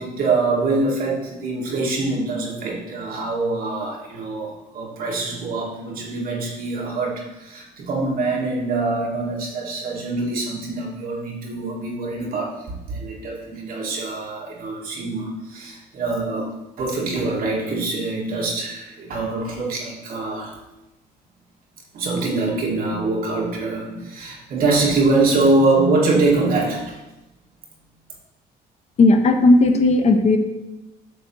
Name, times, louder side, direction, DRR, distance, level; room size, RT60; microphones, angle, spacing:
voice 1, 0.0-20.6 21.9-27.0, right 3 dB, 60° right, -2 dB, 2.0 m, -24 dB
voice 2, 29.0-30.4, left 2 dB, 40° left, 6 dB, 0.8 m, -15 dB
8.3 x 6.7 x 3.0 m, 0.99 s
cardioid pair, 110°, 17 cm